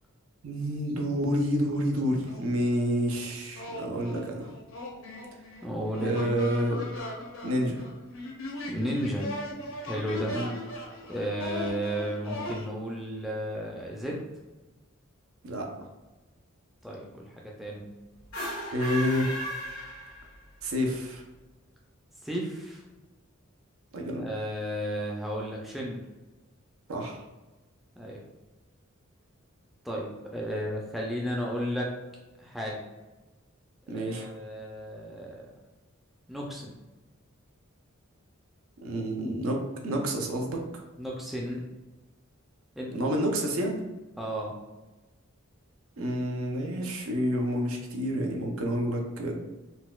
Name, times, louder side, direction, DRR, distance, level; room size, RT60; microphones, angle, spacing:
voice 1, 0.4-4.5 6.0-6.8 7.4-7.9 10.3-10.5 15.4-15.7 18.7-19.5 20.6-21.2 23.9-24.2 26.9-27.2 33.9-34.3 38.8-40.6 42.9-43.8 46.0-49.3, equal, 80° right, 1 dB, 0.6 m, -29 dB
sound 1, 1.2-1.3 1.6-2.9 3.6-12.7, left 1 dB, 70° left, 0.6 m, -39 dB
voice 2, 5.6-6.2 8.7-9.3 9.8-10.4 11.1-14.2 16.8-17.9 22.2-22.8 24.2-26.0 28.0-28.2 29.8-31.9 32.4-32.8 33.9-35.4 36.3-36.7 41.0-41.6 42.8-42.9 44.2-44.6, equal, ahead, -3 dB, 0.4 m, -33 dB
sound 2, 18.2-20.6, equal, 90° left, 1.3 m, -36 dB
4.0 x 2.2 x 2.3 m, 1.2 s
head